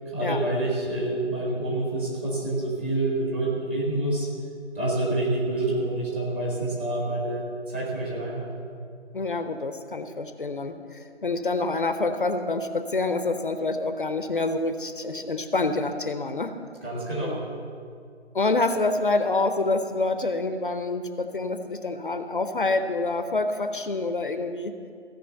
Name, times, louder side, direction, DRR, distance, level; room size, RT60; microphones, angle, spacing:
voice 1, 0.1-4.3 4.7-7.4 7.7-8.5 16.8-17.4, right 2 dB, 10° right, -4 dB, 1.1 m, -27 dB
voice 2, 9.1-16.5 17.2-17.4 18.3-24.7, left 3 dB, 50° left, 8 dB, 0.7 m, -27 dB
15.5 x 6.1 x 7.8 m, 2.3 s
figure-of-eight pair, 155°, 35 cm